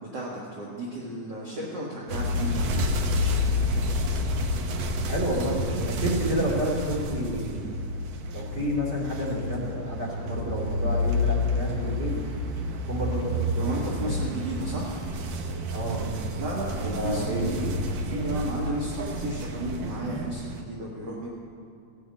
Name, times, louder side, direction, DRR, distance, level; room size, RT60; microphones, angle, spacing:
voice 1, 0.1-3.7 13.6-15.0 16.4-17.6 18.1-21.3, right 1 dB, 40° right, -5 dB, 1.8 m, -33 dB
sound 1, 2.1-20.6, left 2 dB, 70° right, 1.9 m, -29 dB
voice 2, 5.1-7.7 8.3-12.1 12.9-14.1 15.7-16.1 16.8-17.7, right 1 dB, 20° right, -5 dB, 3.0 m, -29 dB
16.5 x 6.5 x 8.3 m, 2.4 s
omnidirectional pair, 3.6 m